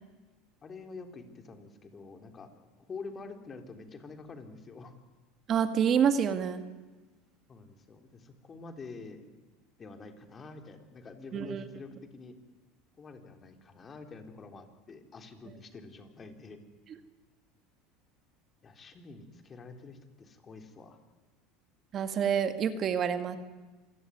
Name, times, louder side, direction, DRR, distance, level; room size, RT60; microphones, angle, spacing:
voice 1, 0.6-4.9 7.5-9.3 9.8-12.3 13.0-16.6 18.6-21.0, left 4 dB, 30° left, 6 dB, 3.8 m, -47 dB
voice 2, 5.5-6.6 11.3-11.6 21.9-23.4, right 8 dB, 40° right, 9 dB, 2.1 m, -27 dB
27.0 x 18.0 x 9.6 m, 1.2 s
supercardioid pair, 95°, 0 cm